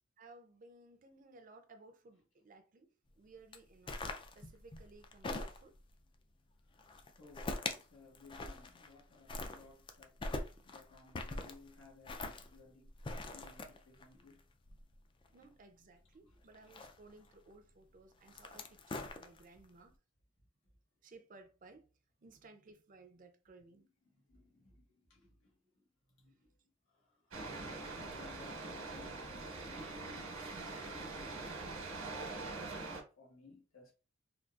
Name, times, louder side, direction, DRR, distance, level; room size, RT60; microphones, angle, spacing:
voice 1, 0.2-2.9 3.2-4.0 4.4-5.7 15.3-19.9 21.0-21.9 22.2-23.9, right 3 dB, 40° right, 0.5 m, -59 dB
sound 1, 3.5-5.9 6.8-7.8 8.1-9.0 9.3-15.4 16.5-17.3 18.1-19.7, left 2 dB, 25° left, 0.3 m, -43 dB
voice 2, 7.2-14.4 15.4-15.5 16.2-16.4 19.5-19.6 23.7-26.5 26.9-31.6 31.9-32.9 33.2-33.9, left 3 dB, 80° left, 1.2 m, -60 dB
sound 2, 27.3-33.0, right 3 dB, 85° right, 1.0 m, -43 dB
3.8 x 2.4 x 2.3 m
head